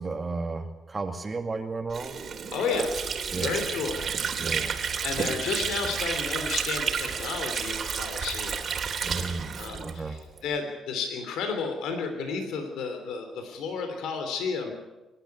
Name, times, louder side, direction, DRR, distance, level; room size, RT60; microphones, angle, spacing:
voice 1, 0.0-2.2 3.3-3.6 4.4-4.8 9.0-10.2, right 3 dB, 30° right, 5 dB, 2.1 m, -33 dB
Water / Sink (filling or washing), 1.9-10.5, right 6 dB, 55° right, 3.1 m, -31 dB
voice 2, 2.5-2.9 3.4-4.0 5.0-8.7 9.6-14.7, left 5 dB, 85° left, 5 dB, 3.2 m, -32 dB
26.0 x 12.0 x 9.5 m, 1.1 s
cardioid pair, 90°, 0 cm